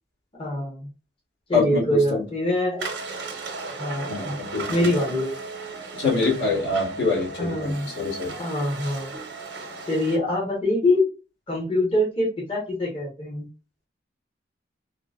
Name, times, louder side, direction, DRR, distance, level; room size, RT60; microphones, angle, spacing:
voice 1, 0.4-0.9 1.5-2.9 3.8-4.4 4.7-5.3 7.4-7.9 8.4-9.1 9.8-11.0 11.5-13.5, left 1 dB, 30° left, -4 dB, 0.9 m, -24 dB
voice 2, 1.5-2.2 4.1-4.9 6.0-8.4, left 3 dB, 70° left, -4 dB, 1.4 m, -25 dB
sound 1, 2.8-10.2, right 3 dB, 75° right, 0.8 m, -36 dB
3.6 x 2.2 x 2.4 m, 0.33 s
head